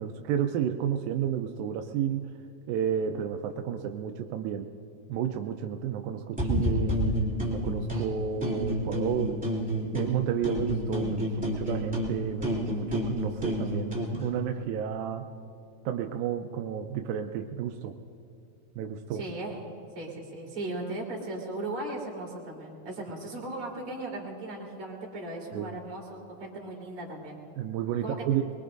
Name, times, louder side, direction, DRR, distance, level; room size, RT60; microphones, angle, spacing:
voice 1, 0.0-2.3 2.7-4.7 5.1-7.0 7.5-9.4 9.9-15.3 15.9-17.9 18.8-19.2 25.5-25.7 27.6-28.4, right 9 dB, 85° right, 5 dB, 2.0 m, -31 dB
sound 1, 6.4-8.0 8.4-10.2 10.4-14.1, equal, 5° right, 1.8 m, -29 dB
voice 2, 19.1-27.4 28.0-28.2, right 2 dB, 35° right, -3 dB, 3.5 m, -37 dB
23.5 x 22.5 x 2.6 m, 2.5 s
omnidirectional pair, 4.7 m